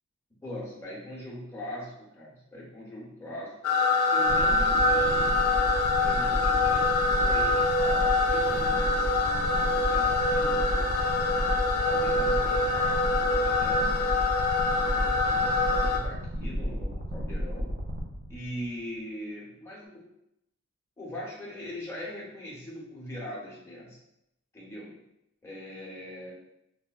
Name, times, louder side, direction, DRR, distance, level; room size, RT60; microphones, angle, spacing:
voice 1, 0.4-3.5 4.1-5.4 6.0-11.2 11.7-14.0 14.8-17.7 18.3-20.0 21.0-24.0 24.5-25.0 25.4-26.3, left 1 dB, 15° left, -6 dB, 0.9 m, -41 dB
sound 1, 3.6-16.0, left 3 dB, 75° left, 0.4 m, -25 dB
sound 2, 4.3-18.6, equal, 50° right, 0.6 m, -32 dB
4.8 x 2.0 x 2.3 m, 0.81 s
head